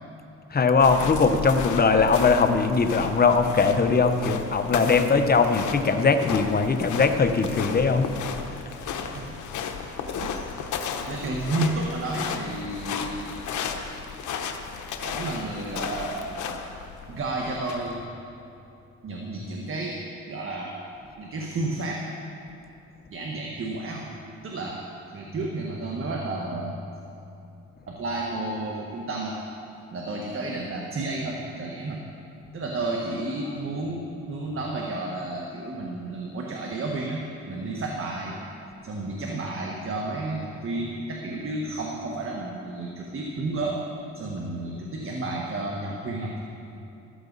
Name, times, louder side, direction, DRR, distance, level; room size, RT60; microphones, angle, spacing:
voice 1, 0.5-8.1, left 4 dB, 30° left, 7 dB, 1.0 m, -20 dB
sound 1, 0.8-18.0, left 6 dB, 75° left, 1.1 m, -34 dB
voice 2, 10.2-10.6 11.1-13.4 15.0-16.4 17.1-18.0 19.0-20.0 20.3-20.7 21.2-22.0 23.1-24.0 24.4-24.8 25.1-26.8 27.9-29.4 29.9-32.0 32.5-37.2 37.5-38.4 38.8-43.8 44.1-46.3, right 2 dB, 45° right, -1 dB, 1.5 m, -31 dB
14.5 x 13.5 x 4.1 m, 2.7 s
cardioid pair, 90°, 30 cm